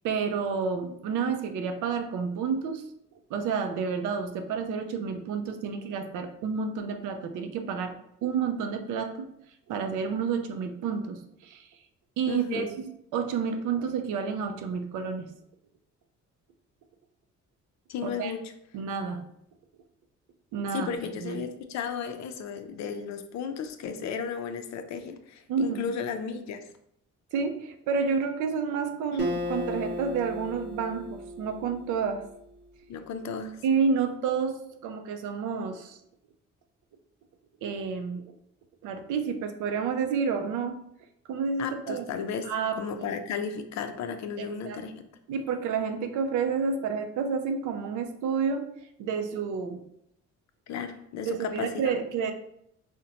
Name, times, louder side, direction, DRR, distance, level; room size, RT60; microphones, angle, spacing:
voice 1, 0.0-2.9 3.3-7.9 8.2-9.3 9.7-11.7 12.2-15.3 18.0-18.3 18.7-19.2 20.5-21.4 25.5-26.0 27.3-32.2 33.6-34.6 34.8-36.0 37.6-38.2 38.8-40.8 41.3-42.1 42.4-42.8 44.4-44.8 45.3-48.7 49.0-49.8 51.2-52.3, right 6 dB, 90° right, 7 dB, 0.5 m, -30 dB
voice 2, 12.3-12.7 17.9-18.5 20.7-26.6 29.1-29.2 32.9-33.6 41.6-42.5 42.8-45.0 50.7-51.9, left 6 dB, 65° left, 7 dB, 0.4 m, -34 dB
Acoustic guitar, 29.2-32.7, equal, 35° right, 0.9 m, -35 dB
3.8 x 2.1 x 2.8 m, 0.74 s
cardioid pair, 90°, 30 cm